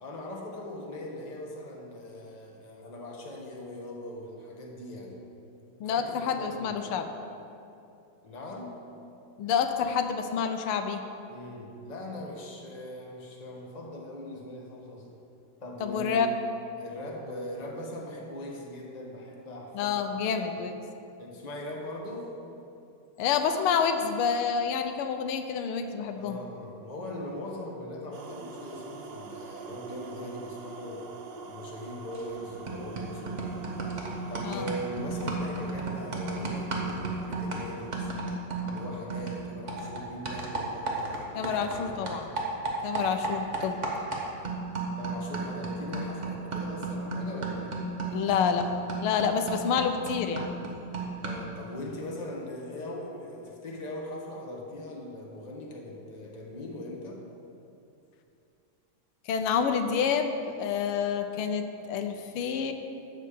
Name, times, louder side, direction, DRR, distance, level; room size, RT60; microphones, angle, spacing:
voice 1, 0.0-5.2 5.8-6.8 8.2-8.8 11.3-15.1 15.6-16.3 16.8-20.0 21.2-22.3 26.2-33.6 34.3-38.1 38.7-41.5 41.8-42.1 45.0-47.8 51.2-57.2, left 1 dB, 25° left, -1 dB, 1.2 m, -40 dB
voice 2, 5.8-7.1 9.4-11.1 15.8-16.3 19.7-20.8 23.2-26.4 34.4-34.7 41.3-42.3 42.8-43.8 48.1-48.7 49.0-50.5 59.3-60.3 60.6-62.7, left 6 dB, 85° left, 7 dB, 1.6 m, -28 dB
sound 1, 28.1-38.0, right 4 dB, 65° right, 1.5 m, -44 dB
sound 2, 32.1-32.4 32.7-41.8 42.1-51.5, right 3 dB, 40° right, 1.5 m, -34 dB
12.5 x 4.4 x 8.4 m, 2.7 s
omnidirectional pair, 2.3 m